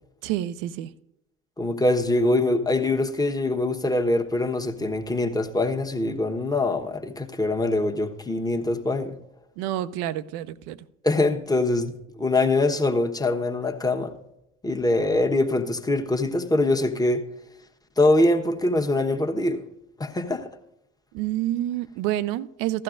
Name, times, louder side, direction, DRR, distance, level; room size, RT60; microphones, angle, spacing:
voice 1, 0.2-0.9 9.6-10.8 21.1-22.8, right 13 dB, 70° right, 0.6 m, -28 dB
voice 2, 1.6-9.1 11.0-14.1 14.6-17.2 18.0-19.6 20.0-20.5, left 2 dB, 10° left, 1.1 m, -23 dB
15.5 x 12.5 x 2.5 m
hypercardioid pair, 55°, 34 cm